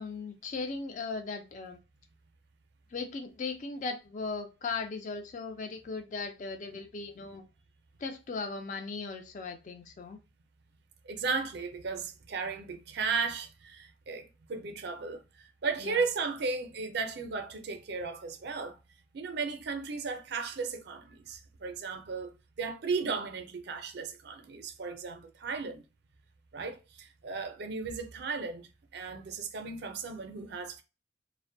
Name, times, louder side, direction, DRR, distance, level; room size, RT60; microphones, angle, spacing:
voice 1, 0.0-1.8 2.9-7.4 8.0-10.2 15.8-16.0, left 4 dB, 40° left, 0.3 m, -38 dB
voice 2, 11.1-18.8 19.1-22.3 22.6-25.8 26.5-30.8, right 4 dB, 55° right, 0.4 m, -35 dB
2.5 x 2.1 x 2.5 m
head